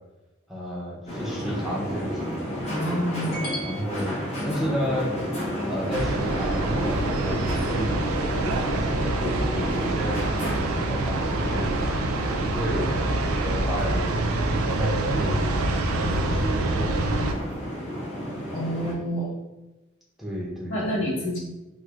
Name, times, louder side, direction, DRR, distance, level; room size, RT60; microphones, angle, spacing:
voice 1, 0.5-2.3 3.6-5.1 5.7-7.9 8.6-10.2 10.5-11.7 12.4-14.2 14.6-15.5 15.9-17.3 20.2-21.0, equal, ahead, -5 dB, 0.6 m, -32 dB
sound 1, 1.1-18.9, equal, 30° left, 0.8 m, -32 dB
voice 2, 2.7-3.8 18.5-19.3 20.7-21.4, equal, 85° left, -6 dB, 0.9 m, -28 dB
sound 2, 5.9-17.3, right 2 dB, 90° right, 0.4 m, -26 dB
4.6 x 2.1 x 2.3 m, 1.0 s
head